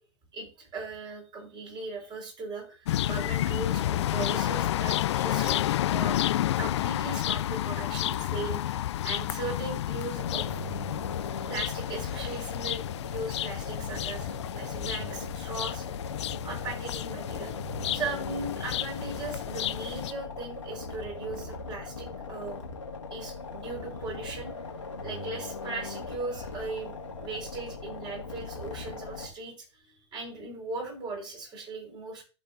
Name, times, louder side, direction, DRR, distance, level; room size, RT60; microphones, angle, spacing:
voice 1, 0.3-5.6 5.9-6.2 6.6-10.6 11.5-16.0 16.4-17.5 17.9-22.6 23.1-24.5 25.0-26.9 27.2-32.2, right 3 dB, 30° right, -1 dB, 4.8 m, -38 dB
sound 1, 2.9-20.1, left 13 dB, 70° left, 0.4 m, -31 dB
sound 2, 10.1-29.3, left 3 dB, 90° left, 1.8 m, -39 dB
14.0 x 5.3 x 2.6 m, 0.33 s
hypercardioid pair, 100°, 15 cm